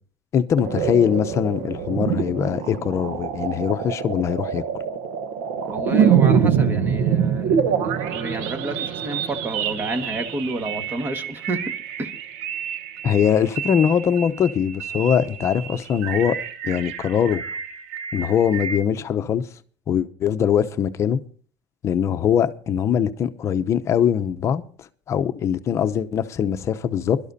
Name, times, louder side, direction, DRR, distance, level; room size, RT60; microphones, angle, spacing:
voice 1, 0.3-4.6 13.0-16.4 16.6-17.4 18.1-19.4 19.9-21.2 21.8-27.2, left 8 dB, 40° left, 0.7 m, -22 dB
sound 1, 0.6-18.8, right 7 dB, 85° right, 1.1 m, -26 dB
voice 2, 5.7-11.7 12.0-12.1, right 2 dB, 25° right, 1.6 m, -30 dB
23.0 x 12.0 x 2.7 m
cardioid pair, 130°, 8 cm